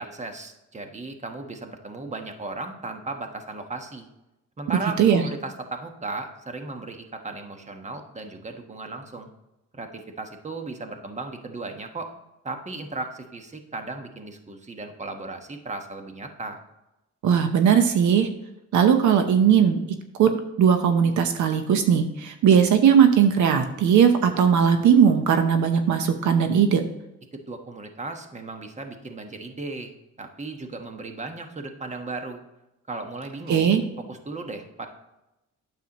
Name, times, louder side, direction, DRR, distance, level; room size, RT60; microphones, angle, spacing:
voice 1, 0.0-4.1 4.6-9.3 9.7-12.1 12.4-16.6 27.3-32.4 32.9-34.9, right 3 dB, 25° right, 5 dB, 1.2 m, -36 dB
voice 2, 17.2-18.3 18.7-19.8 20.2-20.3 20.6-26.8 33.5-33.8, right 7 dB, 75° right, 7 dB, 0.8 m, -18 dB
9.2 x 7.0 x 2.9 m, 0.93 s
cardioid pair, 90°, 30 cm